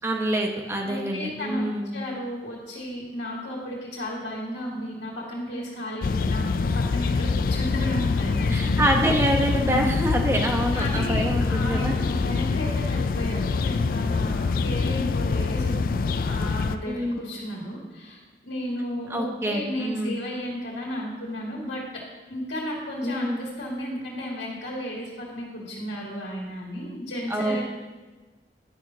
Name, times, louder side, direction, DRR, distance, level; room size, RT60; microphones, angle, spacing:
voice 1, 0.0-1.9 8.5-12.0 16.9-17.3 19.1-20.1 23.0-23.4 27.3-27.6, right 1 dB, 15° right, 2 dB, 0.9 m, -26 dB
voice 2, 0.8-8.9 9.7-9.9 10.7-22.0 22.3-27.6, equal, 85° left, -3 dB, 2.1 m, -33 dB
sound 1, 6.0-16.8, left 4 dB, 50° left, 0.3 m, -25 dB
10.5 x 4.5 x 6.1 m, 1.2 s
head